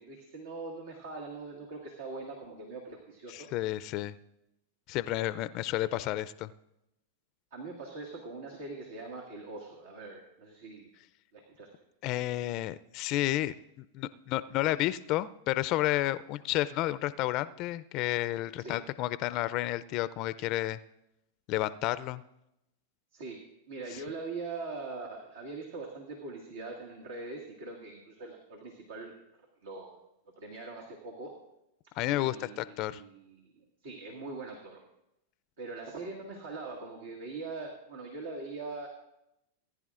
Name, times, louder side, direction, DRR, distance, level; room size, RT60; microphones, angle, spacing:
voice 1, 0.0-3.5 7.5-10.9 11.3-11.7 18.6-18.8 23.1-23.4 23.7-29.1 29.6-30.0 30.4-31.3 32.1-34.8 35.6-38.9, right 3 dB, 75° right, -1 dB, 1.9 m, -42 dB
voice 2, 3.3-4.1 4.9-6.5 12.0-20.8 21.5-22.2 32.0-33.0, left 15 dB, 45° left, 16 dB, 0.4 m, -31 dB
19.0 x 10.0 x 2.5 m, 0.85 s
hypercardioid pair, 110°, 0 cm